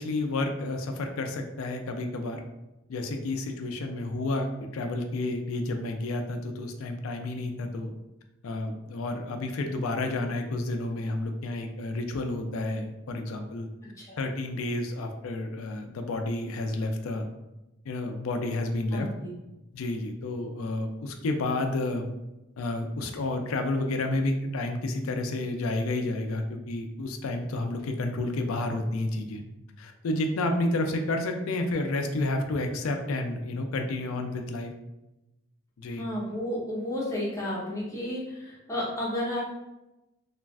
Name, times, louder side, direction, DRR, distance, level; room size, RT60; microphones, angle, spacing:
voice 1, 0.0-2.4 2.9-7.9 8.4-13.7 14.2-17.3 17.9-19.1 19.7-22.1 22.6-29.4 29.8-34.7 35.8-36.1, left 2 dB, 85° left, 5 dB, 0.4 m, -30 dB
voice 2, 18.9-19.3 36.0-39.4, left 1 dB, 15° left, -6 dB, 0.8 m, -32 dB
3.1 x 2.4 x 2.3 m, 0.97 s
head